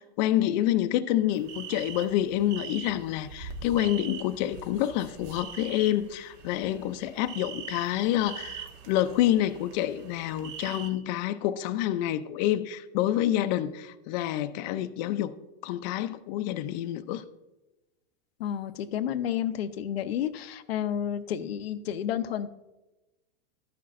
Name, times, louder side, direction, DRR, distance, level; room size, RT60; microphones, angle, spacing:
voice 1, 0.0-15.3 15.6-17.2, left 12 dB, 50° left, 0.5 m, -28 dB
sound 1, 1.3-10.9, right 7 dB, 60° right, 1.4 m, -43 dB
voice 2, 18.4-22.5, left 10 dB, 85° left, 0.6 m, -31 dB
12.5 x 10.0 x 2.5 m
supercardioid pair, 130°, 30 cm